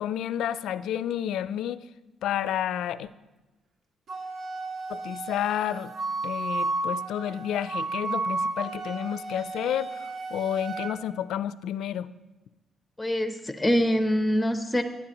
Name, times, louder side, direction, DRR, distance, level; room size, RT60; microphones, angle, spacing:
voice 1, 0.0-1.8 2.2-3.1 4.9-5.9 6.2-12.1, left 10 dB, 80° left, 16 dB, 0.4 m, -30 dB
Wind instrument woodwind instrument, 4.1-10.9, right 3 dB, 65° right, 1.6 m, -33 dB
voice 2, 13.0-14.8, equal, 10° left, 8 dB, 0.7 m, -24 dB
15.0 x 9.7 x 3.0 m, 1.1 s
cardioid pair, 90°, 0 cm